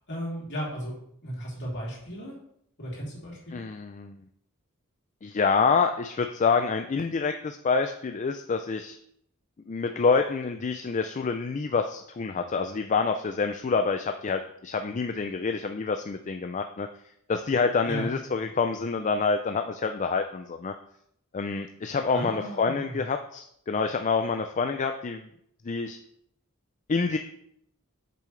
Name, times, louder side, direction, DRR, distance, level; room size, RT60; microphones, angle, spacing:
voice 1, 0.1-0.9 1.2-2.3 2.8-3.6 17.8-18.1 22.1-23.0, equal, 55° left, -5 dB, 3.1 m, -35 dB
voice 2, 3.5-4.2 5.2-9.0 9.7-16.9 17.3-20.7 21.3-25.3 25.6-26.0 26.9-27.2, left 5 dB, 35° left, 6 dB, 0.4 m, -27 dB
8.4 x 6.8 x 3.2 m, 0.71 s
head